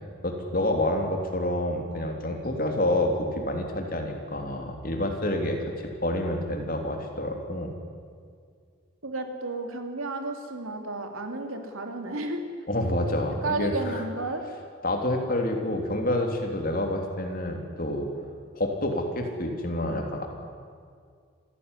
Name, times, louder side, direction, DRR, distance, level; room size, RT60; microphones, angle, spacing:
voice 1, 0.2-5.6 6.0-7.7 12.7-14.0 14.8-18.1 18.5-20.3, left 1 dB, 40° left, 3 dB, 3.2 m, -28 dB
voice 2, 9.0-12.4 13.4-14.4, right 2 dB, 80° right, 5 dB, 2.9 m, -32 dB
26.5 x 16.5 x 9.9 m, 2.1 s
head